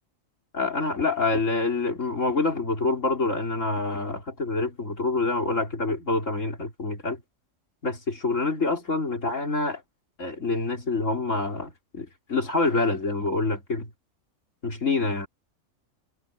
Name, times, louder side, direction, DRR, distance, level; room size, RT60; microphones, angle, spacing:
voice 1, 0.5-7.2 7.8-9.8 10.2-13.9 14.6-15.3, left 3 dB, 70° left, 4.1 m, -26 dB
omnidirectional pair, 1.4 m